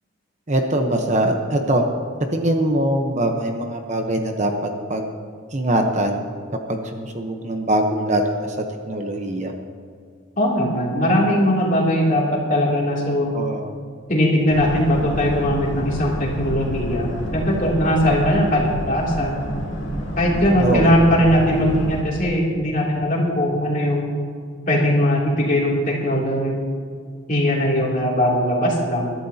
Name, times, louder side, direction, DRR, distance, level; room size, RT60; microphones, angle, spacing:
voice 1, 0.5-1.8 2.3-4.5 4.9-5.1 5.5-6.2 6.7-8.5 8.9-9.5 13.3-13.7 20.6-20.9, right 1 dB, 35° right, 4 dB, 1.0 m, -22 dB
voice 2, 10.4-13.3 14.1-19.4 20.2-24.1 24.7-26.6 27.3-29.1, equal, 40° left, -3 dB, 2.9 m, -20 dB
Boat Water vehicle, 14.5-22.0, equal, 65° left, 2.5 m, -28 dB
21.5 x 12.0 x 2.9 m, 2.1 s
head